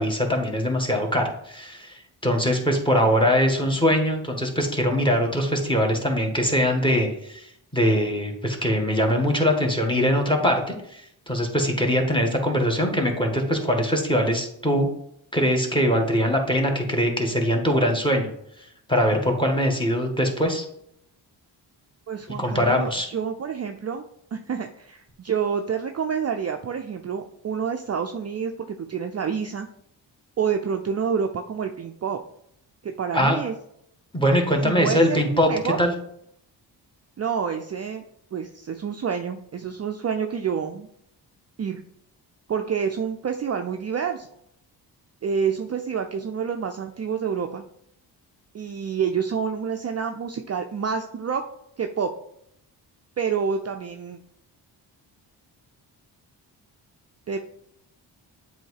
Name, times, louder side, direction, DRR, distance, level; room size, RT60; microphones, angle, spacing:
voice 1, 0.0-7.5 7.7-14.9 15.3-18.3 18.9-20.6 22.4-23.1 33.1-33.4 34.1-35.5 35.8-35.9, equal, 10° left, 3 dB, 1.7 m, -22 dB
voice 2, 22.1-29.7 30.4-32.2 32.8-33.5 34.6-35.8 37.2-38.0 38.3-40.9 41.6-41.8 42.5-44.3 45.2-47.6 48.5-51.4 51.8-52.1 53.2-54.2 57.3-57.4, right 6 dB, 35° right, 5 dB, 0.5 m, -28 dB
7.5 x 2.8 x 4.8 m, 0.72 s
supercardioid pair, 50°, 47 cm